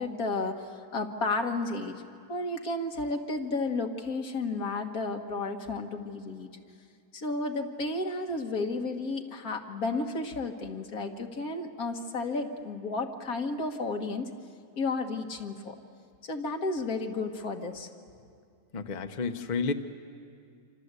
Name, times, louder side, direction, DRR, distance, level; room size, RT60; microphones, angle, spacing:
voice 1, 0.0-2.0 2.3-6.5 7.1-14.3 14.8-15.8 16.2-17.9, left 3 dB, 80° left, 4 dB, 2.1 m, -32 dB
voice 2, 18.7-19.7, left 4 dB, 35° left, 7 dB, 1.0 m, -31 dB
27.0 x 26.5 x 8.2 m, 2.4 s
omnidirectional pair, 1.5 m